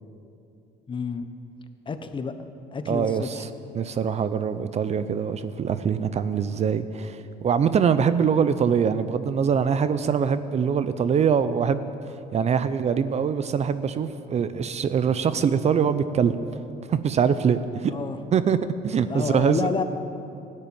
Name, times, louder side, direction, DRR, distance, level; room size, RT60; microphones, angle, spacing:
voice 1, 0.9-1.3 1.9-2.3 2.7-3.4 17.9-18.2 19.0-19.8, left 5 dB, 30° left, 9 dB, 1.0 m, -29 dB
voice 2, 2.9-3.5 3.7-11.9 12.3-16.4 16.9-17.9 18.3-18.6 18.8-19.7, right 7 dB, 40° right, 13 dB, 0.6 m, -23 dB
13.5 x 9.8 x 8.9 m, 2.7 s
cardioid pair, 110°, 17 cm